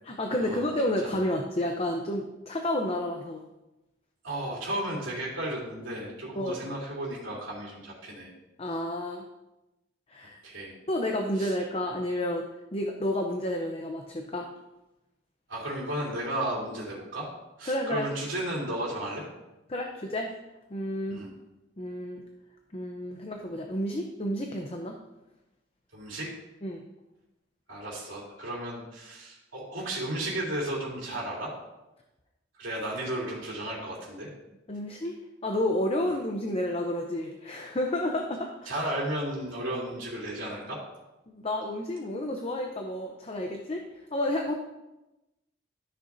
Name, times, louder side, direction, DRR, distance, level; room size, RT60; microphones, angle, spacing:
voice 1, 0.1-3.4 6.4-6.6 8.6-9.2 10.1-10.4 10.9-14.5 17.7-18.0 19.7-20.3 20.7-21.2 21.8-22.2 22.7-24.9 26.6-26.8 34.7-35.2 35.4-38.8 41.3-43.8 44.1-44.5, left 1 dB, 30° left, 2 dB, 0.7 m, -30 dB
voice 2, 4.2-8.3 10.4-10.7 11.4-11.5 15.5-17.3 17.6-19.3 21.1-21.3 25.9-26.3 27.7-31.5 32.6-34.3 38.7-40.8, right 1 dB, 75° right, -5 dB, 3.1 m, -34 dB
13.5 x 6.6 x 2.6 m, 0.98 s
head